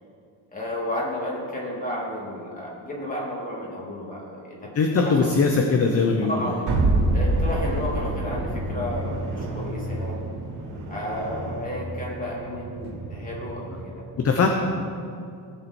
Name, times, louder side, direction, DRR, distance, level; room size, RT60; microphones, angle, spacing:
voice 1, 0.5-5.3 6.3-6.5 7.1-10.3 10.9-14.0, left 1 dB, 20° left, -4 dB, 2.8 m, -32 dB
voice 2, 4.7-6.7 14.2-14.5, left 4 dB, 35° left, 3 dB, 0.9 m, -21 dB
sound 1, 6.7-11.8, right 2 dB, 85° right, 3.0 m, -27 dB
sound 2, 8.0-13.8, right 1 dB, 40° right, 1.5 m, -36 dB
18.5 x 7.2 x 4.4 m, 2.4 s
cardioid pair, 160°, 41 cm